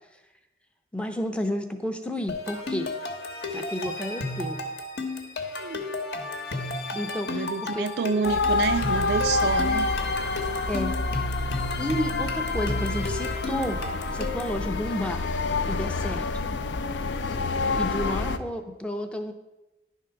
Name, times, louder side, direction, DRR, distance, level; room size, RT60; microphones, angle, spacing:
voice 1, 0.9-2.9 3.5-4.6 6.9-7.9 10.7-10.9 11.8-13.8 14.1-15.3 15.6-16.4 17.7-19.3, left 1 dB, 5° left, 6 dB, 0.5 m, -31 dB
sound 1, 2.3-14.6, left 2 dB, 65° left, 0.9 m, -33 dB
voice 2, 7.3-9.9, right 5 dB, 65° right, 12 dB, 0.3 m, -28 dB
sound 2, 8.2-18.4, left 3 dB, 80° left, 0.5 m, -28 dB
10.0 x 3.7 x 5.7 m, 1.0 s
head